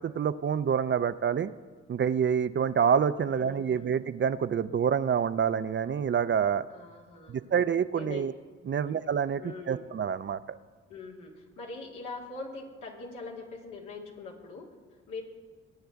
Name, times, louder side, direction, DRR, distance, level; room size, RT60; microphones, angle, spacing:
voice 1, 0.0-1.5 1.9-6.7 7.3-8.3 8.7-9.4 9.7-10.6, right 7 dB, 40° right, 13 dB, 0.5 m, -27 dB
voice 2, 3.3-4.0 6.7-7.5 7.9-8.3 8.7-8.9 9.4-9.8 10.9-15.2, left 3 dB, 80° left, -2 dB, 2.4 m, -43 dB
21.0 x 8.9 x 3.5 m, 1.5 s
hypercardioid pair, 50°, 30 cm